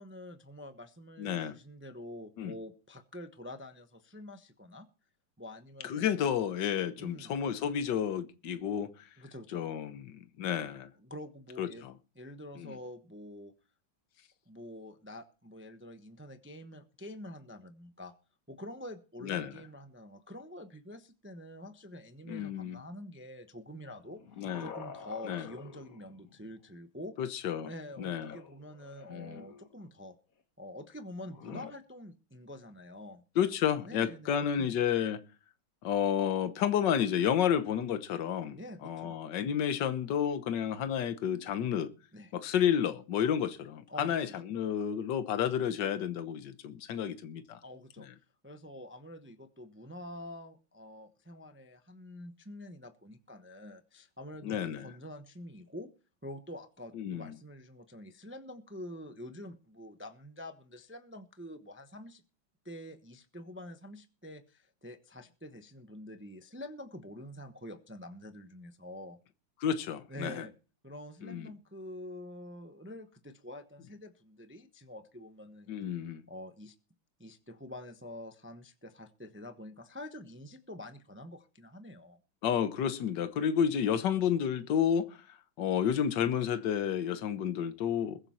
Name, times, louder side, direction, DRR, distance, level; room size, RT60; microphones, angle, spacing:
voice 1, 0.0-4.9 5.4-6.3 7.0-7.3 9.2-9.6 11.0-11.9 12.2-13.5 14.5-18.1 18.5-24.2 24.6-27.1 27.6-30.2 30.6-33.2 33.9-34.7 38.5-39.2 42.1-42.3 43.9-44.3 47.6-48.1 48.4-55.9 56.2-62.2 62.6-69.2 70.1-70.5 70.8-75.7 76.3-76.8 77.2-82.2, left 1 dB, 20° right, 0.3 m, -47 dB
voice 2, 1.2-1.5 2.4-2.5 5.8-9.1 9.5-10.9 11.6-11.9 12.6-12.7 19.2-19.5 22.3-22.8 24.4-24.7 25.3-25.5 27.2-27.7 28.0-28.4 29.1-29.4 31.5-31.7 33.4-35.2 35.8-41.9 42.3-47.6 48.0-48.1 54.4-54.9 56.9-57.3 69.6-70.5 71.2-71.5 75.7-76.2 82.4-85.3 85.6-88.2, left 8 dB, 65° left, 1.7 m, -31 dB
sound 1, 23.9-26.6 28.1-29.8 31.2-31.7, left 6 dB, 45° left, 1.6 m, -49 dB
21.5 x 7.5 x 4.3 m
omnidirectional pair, 2.2 m